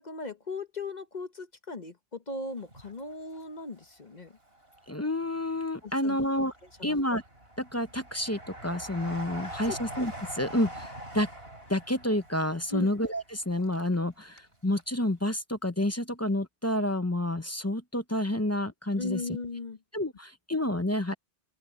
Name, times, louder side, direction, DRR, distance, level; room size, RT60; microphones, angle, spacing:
voice 1, 0.0-4.4 5.8-6.2 6.8-7.0 9.6-9.8 12.7-12.9 19.0-19.8, left 3 dB, 40° left, 1.1 m, -37 dB
Train, 2.6-3.8 4.3-5.2 5.8-14.5 14.8-14.9, right 1 dB, 60° right, 6.4 m, -44 dB
voice 2, 4.9-6.5 6.8-7.2 7.6-11.3 11.7-19.2 19.9-21.1, left 1 dB, 15° left, 0.7 m, -29 dB
omnidirectional pair, 1.2 m